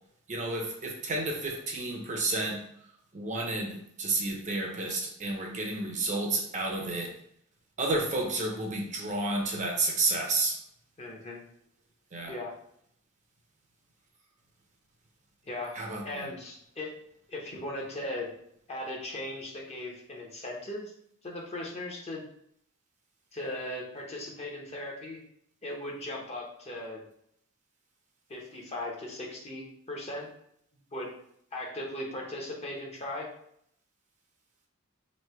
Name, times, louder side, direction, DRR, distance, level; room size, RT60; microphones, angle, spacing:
voice 1, 0.3-2.6 3.1-7.1 7.8-10.6 12.1-12.3 15.8-16.3, right 2 dB, 35° right, 0.7 m, -31 dB
voice 2, 11.0-11.4 12.3-12.5 15.4-15.7 16.0-16.9 17.3-18.3 18.7-20.9 21.2-22.2 23.3-25.2 25.6-27.0 28.3-30.3 30.9-31.1 31.5-33.3, left 1 dB, 30° left, 0.9 m, -38 dB
3.2 x 2.8 x 4.3 m
head